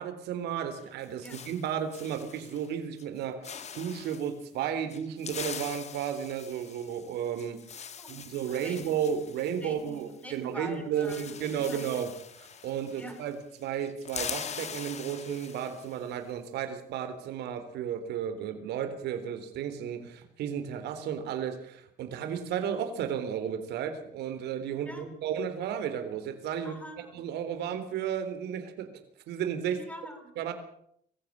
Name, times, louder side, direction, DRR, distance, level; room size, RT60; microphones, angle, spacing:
voice 1, 0.0-12.1 12.6-26.7 27.1-28.9 29.3-29.8 30.4-30.5, right 8 dB, 80° right, 9 dB, 3.8 m, -33 dB
sound 1, 0.7-2.7 3.0-3.2 3.4-4.3 4.9-10.4 10.6-10.7 10.9-13.3 13.6-16.0, left 7 dB, 40° left, 2.1 m, -43 dB
voice 2, 8.0-9.0 9.6-11.8 13.0-13.2 24.9-25.1 26.6-27.2 29.7-30.3, right 1 dB, 10° left, 6 dB, 6.6 m, -44 dB
23.5 x 15.5 x 8.7 m, 0.68 s
cardioid pair, 110°, 17 cm